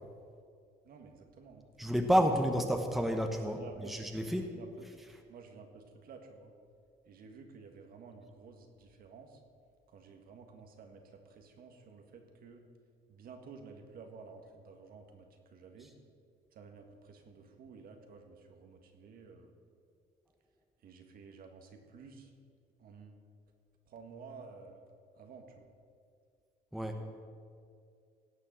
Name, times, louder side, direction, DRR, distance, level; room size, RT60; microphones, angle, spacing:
voice 1, 0.8-1.7 2.2-2.3 3.4-4.0 4.4-4.9 5.3-6.5 7.1-9.4 9.9-12.7 13.1-15.9 16.5-19.5 20.8-22.3 22.8-23.2 23.9-24.8 25.2-25.7 27.0-27.1, right 5 dB, 60° right, 4 dB, 1.7 m, -52 dB
voice 2, 1.8-4.5 26.7-27.0, equal, ahead, 4 dB, 1.0 m, -30 dB
17.0 x 6.7 x 6.4 m, 2.3 s
cardioid pair, 110°, 17 cm